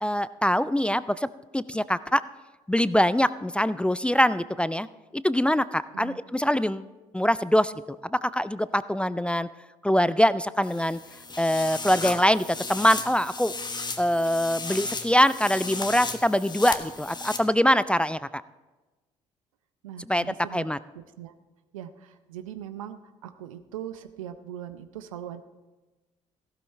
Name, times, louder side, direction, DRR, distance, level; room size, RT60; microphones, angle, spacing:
voice 1, 0.0-1.3 1.5-2.2 2.7-4.9 5.1-6.9 7.1-7.7 8.0-9.5 9.8-11.0 11.4-13.5 14.0-18.4 20.1-20.3 20.5-20.8, equal, 5° left, 17 dB, 0.3 m, -23 dB
sound 1, 10.6-17.4, left 4 dB, 25° left, 1.2 m, -35 dB
voice 2, 19.8-20.7 20.9-21.3 21.7-25.4, right 10 dB, 80° right, 11 dB, 0.6 m, -40 dB
15.0 x 12.5 x 3.2 m, 1.2 s
figure-of-eight pair, 50°, 17 cm